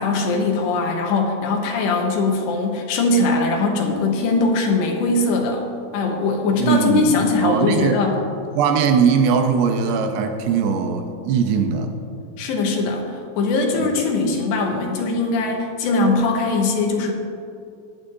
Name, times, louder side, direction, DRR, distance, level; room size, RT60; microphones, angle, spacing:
voice 1, 0.0-5.7 5.9-8.1 12.4-17.1, left 3 dB, 85° left, 1 dB, 3.2 m, -21 dB
voice 2, 6.6-8.0 8.6-11.9 13.8-14.0, right 6 dB, 80° right, 5 dB, 2.8 m, -20 dB
15.0 x 11.0 x 2.7 m, 2.6 s
omnidirectional pair, 4.9 m